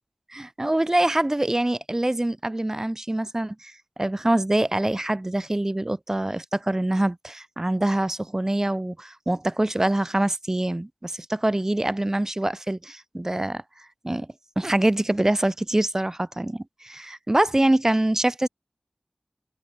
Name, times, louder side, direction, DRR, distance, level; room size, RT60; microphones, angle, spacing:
voice 1, 0.3-3.7 4.0-13.6 14.0-14.3 14.6-18.5, right 1 dB, 20° right, 0.5 m, -24 dB
wide cardioid pair, 80°, 2 cm